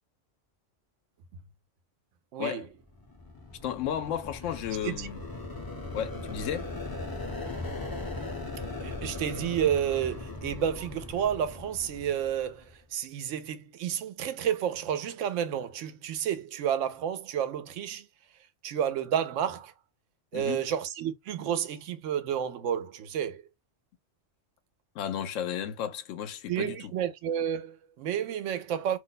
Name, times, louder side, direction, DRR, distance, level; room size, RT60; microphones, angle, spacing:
voice 1, 2.3-2.6 4.8-5.1 8.8-12.6 12.9-18.1 18.6-19.7 20.3-23.4 26.5-29.0, right 9 dB, 80° right, 0.9 m, -30 dB
sound 1, 2.9-12.7, left 2 dB, 25° left, 0.6 m, -39 dB
voice 2, 3.6-5.2 5.9-6.7 20.3-20.6 24.9-26.9, left 9 dB, 85° left, 0.9 m, -33 dB
2.6 x 2.1 x 3.8 m
omnidirectional pair, 1.3 m